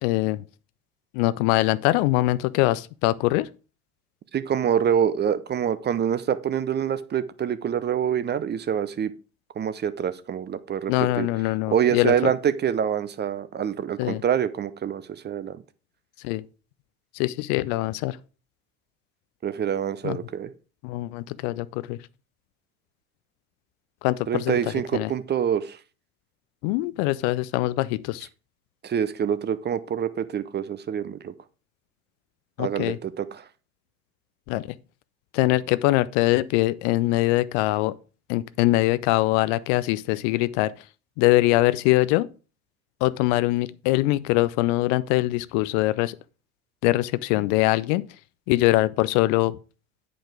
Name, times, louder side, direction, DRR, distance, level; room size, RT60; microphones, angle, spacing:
voice 1, 0.0-0.4 1.1-3.5 10.9-12.3 14.0-14.2 16.2-16.4 17.1-18.2 20.0-20.2 20.8-22.0 24.0-25.1 26.6-28.3 32.6-33.0 34.5-34.8 35.3-37.9 38.3-40.7 41.2-42.3 43.0-46.2 46.8-48.1 48.5-49.6, left 18 dB, 50° left, 0.5 m, -23 dB
voice 2, 4.3-9.1 9.6-11.3 11.7-15.6 19.4-20.5 24.3-25.8 28.8-31.3 32.6-33.4, right 8 dB, 25° right, 0.6 m, -26 dB
8.9 x 5.1 x 4.9 m
figure-of-eight pair, 70°, 43 cm